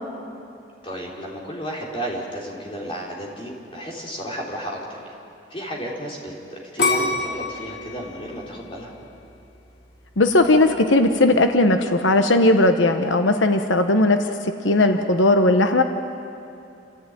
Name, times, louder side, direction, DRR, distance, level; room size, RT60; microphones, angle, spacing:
voice 1, 0.8-5.1 5.5-8.9, equal, 30° left, -2 dB, 4.0 m, -33 dB
sound 1, 6.8-9.7 10.2-10.7, left 3 dB, 65° left, 3.6 m, -26 dB
voice 2, 10.2-14.2 14.4-15.8, left 2 dB, 90° left, 6 dB, 1.1 m, -17 dB
29.0 x 15.0 x 9.0 m, 2.8 s
head